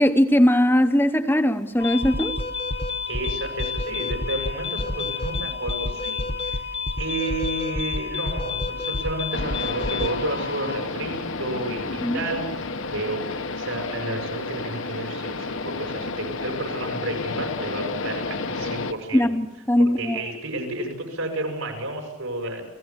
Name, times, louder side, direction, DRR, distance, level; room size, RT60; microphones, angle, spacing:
voice 1, 0.0-2.4 12.0-12.2 19.1-20.3, left 1 dB, 10° left, 8 dB, 0.8 m, -20 dB
sound 1, 1.8-10.8, left 3 dB, 25° left, 1.1 m, -29 dB
voice 2, 3.1-6.7 7.0-13.3 13.6-19.3 20.0-22.6, right 2 dB, 90° right, 3 dB, 7.0 m, -31 dB
sound 2, 9.3-18.9, left 3 dB, 70° left, 1.2 m, -31 dB
29.5 x 17.0 x 7.4 m, 0.97 s
head